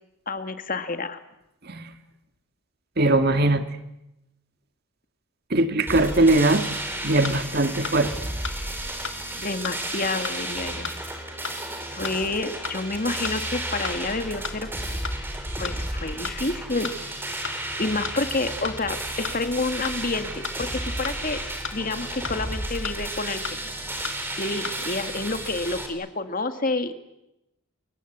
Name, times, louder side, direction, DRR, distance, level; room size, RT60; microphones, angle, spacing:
voice 1, 0.3-1.2 9.3-10.9 11.9-14.7 15.6-16.9 17.5-21.4 21.7-23.7 24.4-26.9, left 3 dB, 40° left, 8 dB, 1.9 m, -29 dB
voice 2, 3.0-3.6 5.5-6.6 7.0-8.1, right 2 dB, 45° right, 8 dB, 2.0 m, -20 dB
sound 1, 5.9-25.9, right 1 dB, 10° right, 4.1 m, -33 dB
sound 2, 7.2-7.3 7.8-8.0 8.4-8.5 9.0-9.2 9.6-9.7 10.2-10.4 10.8-11.0 11.4-11.6 12.0-12.2 12.6-12.8 13.2-13.4 13.8-14.0 14.4-14.5 15.0-15.2 15.6-15.7 16.2-16.4 16.8-17.0 17.4-17.6 18.0-18.2 18.6-18.8 19.2-19.3 19.8-20.0 20.4-20.6 21.0-21.2 21.6-21.7 22.2-22.4 22.8-22.9 23.4-23.6 24.0-24.2 24.6-24.8, left 5 dB, 55° left, 2.0 m, -32 dB
30.0 x 22.5 x 8.1 m, 0.88 s
head